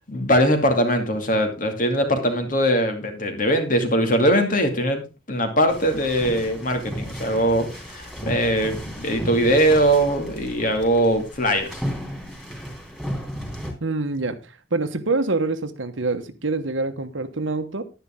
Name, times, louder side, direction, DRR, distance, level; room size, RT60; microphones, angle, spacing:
voice 1, 0.1-5.0 5.3-11.8, equal, 45° left, 2.5 m, -21 dB
sound 1, 5.7-13.7, equal, 5° left, 3.3 m, -34 dB
voice 2, 13.8-14.4 14.7-17.8, right 3 dB, 80° right, 1.3 m, -25 dB
11.0 x 10.5 x 3.7 m
head